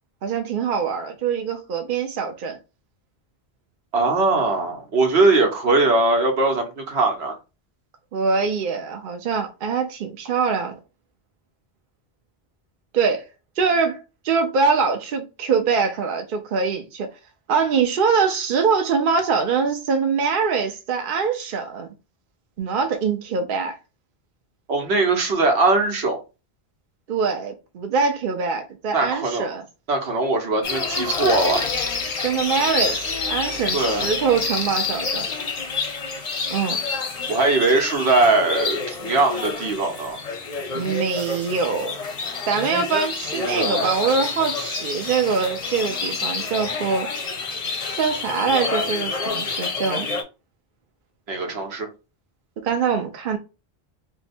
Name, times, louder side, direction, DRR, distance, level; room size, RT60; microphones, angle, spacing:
voice 1, 0.2-2.6 8.1-10.8 12.9-13.2 13.6-17.1 17.5-21.9 22.6-23.8 27.1-29.6 32.2-35.3 36.5-36.8 40.7-42.0 42.5-47.1 47.8-50.1 52.6-53.4, right 5 dB, 60° right, 0.7 m, -23 dB
voice 2, 3.9-7.4 24.7-26.2 28.9-29.6 29.9-31.7 33.7-34.1 37.3-40.2 43.3-43.9 51.3-51.9, right 3 dB, 75° right, 1.1 m, -21 dB
sound 1, 30.6-50.2, left 4 dB, 45° left, 0.6 m, -28 dB
2.8 x 2.2 x 4.1 m
omnidirectional pair, 1.1 m